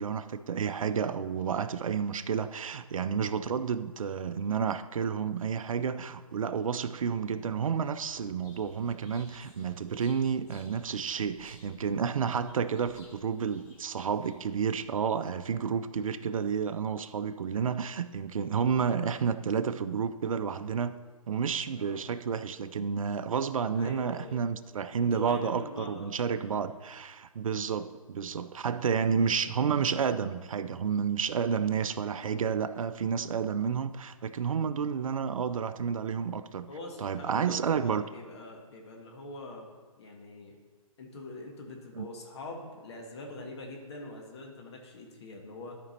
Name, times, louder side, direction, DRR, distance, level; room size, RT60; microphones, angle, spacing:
voice 1, 0.0-20.9 21.3-36.7 37.0-38.0 42.0-42.1, right 6 dB, 65° right, 12 dB, 0.6 m, -30 dB
sound 1, 8.1-14.7, left 2 dB, 25° left, 1.8 m, -57 dB
voice 2, 23.8-24.4 24.9-26.6 36.7-39.7 40.0-40.6 41.0-45.8, left 2 dB, 45° left, 1 dB, 1.7 m, -44 dB
13.0 x 5.2 x 4.3 m, 1.4 s
figure-of-eight pair, 140°, 18 cm